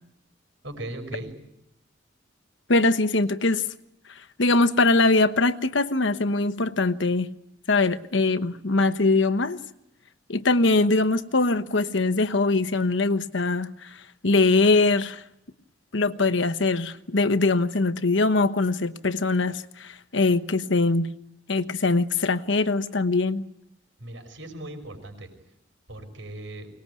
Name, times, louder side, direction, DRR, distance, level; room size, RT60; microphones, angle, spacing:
voice 1, 0.6-1.3 24.0-25.3 25.9-26.7, right 1 dB, 70° right, 5.9 m, -38 dB
voice 2, 2.7-3.7 4.4-7.4 7.7-9.6 10.3-15.2 15.9-21.1 21.5-23.5, left 3 dB, 65° left, 1.1 m, -22 dB
23.5 x 20.0 x 9.6 m
head